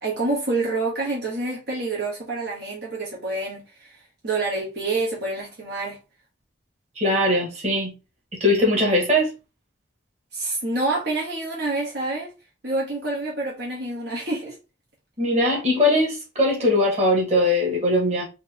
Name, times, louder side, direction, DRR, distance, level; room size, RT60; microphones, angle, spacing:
voice 1, 0.0-6.0 10.3-12.3 12.6-14.6, right 2 dB, 60° right, 1.3 m, -27 dB
voice 2, 7.0-7.9 8.3-9.3 15.2-18.3, left 1 dB, 35° right, 1.8 m, -20 dB
4.2 x 2.9 x 3.8 m
head